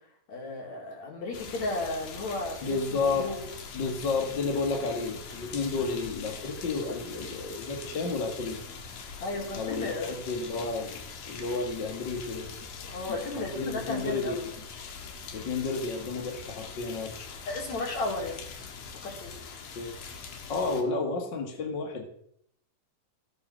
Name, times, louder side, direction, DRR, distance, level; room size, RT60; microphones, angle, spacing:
voice 1, 0.3-3.4 9.2-10.1 12.8-14.4 17.5-18.4 19.0-19.4, left 2 dB, 55° left, 0 dB, 4.7 m, -34 dB
sound 1, 1.3-20.8, left 5 dB, 85° left, 3.3 m, -43 dB
voice 2, 2.6-3.3 3.7-8.6 9.6-12.5 13.1-14.7 15.3-17.3 19.8-20.0 20.5-22.0, left 4 dB, 40° left, 3 dB, 1.9 m, -31 dB
15.0 x 9.5 x 6.2 m, 0.69 s
omnidirectional pair, 3.7 m